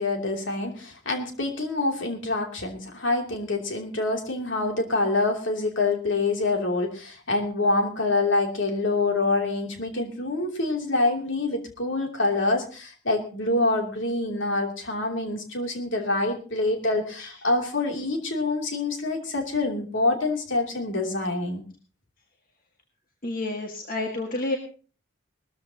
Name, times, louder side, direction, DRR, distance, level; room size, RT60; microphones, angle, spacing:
voice 1, 0.0-21.6, left 2 dB, 60° left, 2 dB, 2.9 m, -26 dB
voice 2, 23.2-24.6, left 2 dB, 40° left, 2 dB, 1.8 m, -29 dB
20.0 x 14.0 x 2.9 m, 0.37 s
head